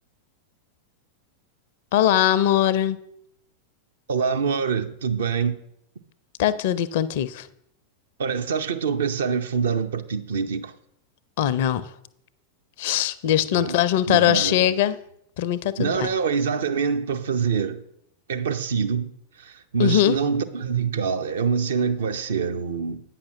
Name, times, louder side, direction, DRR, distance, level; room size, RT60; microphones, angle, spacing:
voice 1, 1.9-3.0 6.4-7.5 11.4-11.9 12.8-15.0 15.4-16.1 19.8-20.2, left 11 dB, 50° left, 0.5 m, -21 dB
voice 2, 4.1-5.6 8.2-10.7 13.5-13.8 14.1-14.8 15.8-17.8 18.3-19.1 19.4-23.0, right 6 dB, 65° right, 0.7 m, -25 dB
8.8 x 5.9 x 6.0 m
figure-of-eight pair, 90°, 0 cm